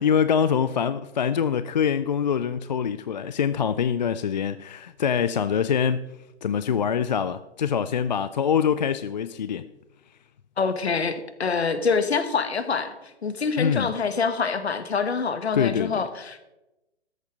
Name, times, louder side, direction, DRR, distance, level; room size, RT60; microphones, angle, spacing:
voice 1, 0.0-6.1 6.4-9.7 13.6-13.9 15.5-16.0, left 7 dB, 40° left, 0.4 m, -24 dB
voice 2, 10.6-16.4, left 5 dB, 65° left, 1.5 m, -26 dB
13.0 x 7.1 x 5.2 m
figure-of-eight pair, 135°, 34 cm